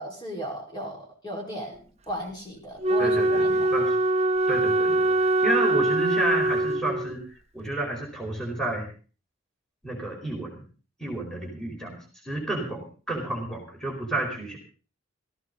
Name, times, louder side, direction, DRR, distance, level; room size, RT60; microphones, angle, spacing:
voice 1, 0.0-3.7, right 1 dB, 20° left, -2 dB, 4.8 m, -36 dB
Wind instrument woodwind instrument, 2.8-7.2, right 2 dB, 30° right, 0.8 m, -23 dB
voice 2, 3.0-3.9 4.5-7.2 7.5-8.9 9.8-10.6 11.0-12.0 12.2-14.6, right 1 dB, 5° left, 0 dB, 4.5 m, -31 dB
17.5 x 14.5 x 4.0 m, 0.38 s
head